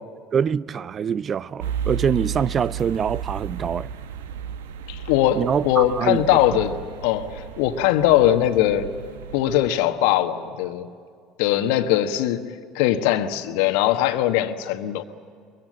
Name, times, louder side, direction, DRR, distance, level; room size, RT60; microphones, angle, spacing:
voice 1, 0.3-3.9 5.4-6.2, right 7 dB, 35° right, 0.5 m, -24 dB
sound 1, 1.6-9.7, right 7 dB, 75° right, 1.0 m, -33 dB
voice 2, 4.9-6.8 7.0-8.9 9.3-10.9 11.4-15.0, left 12 dB, 65° left, 1.3 m, -21 dB
23.5 x 23.0 x 7.7 m
figure-of-eight pair, 65°, 0 cm